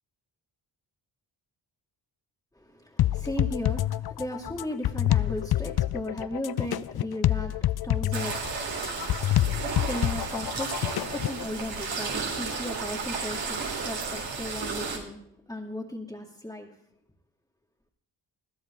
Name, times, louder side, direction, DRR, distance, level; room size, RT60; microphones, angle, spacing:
voice 1, 2.5-16.8, left 1 dB, 5° left, 2.1 m, -36 dB
sound 1, 3.0-11.4, left 13 dB, 60° left, 0.5 m, -27 dB
sound 2, 8.1-15.0, right 4 dB, 80° right, 3.8 m, -33 dB
21.0 x 15.0 x 3.7 m
cardioid pair, 70°, 44 cm